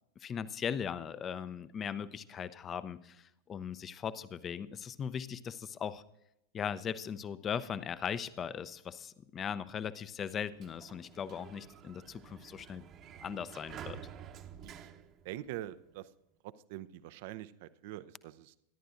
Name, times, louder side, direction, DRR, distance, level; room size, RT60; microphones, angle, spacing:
voice 1, 0.2-6.0 6.5-12.8 13.2-14.0, left 7 dB, 25° left, 16 dB, 0.6 m, -39 dB
Sliding door, 10.3-15.9, right 9 dB, 30° right, 1.0 m, -50 dB
voice 2, 15.2-16.1 16.4-18.6, right 14 dB, 50° right, 15 dB, 0.5 m, -44 dB
23.5 x 11.0 x 2.5 m, 0.85 s
figure-of-eight pair, 90°, 0 cm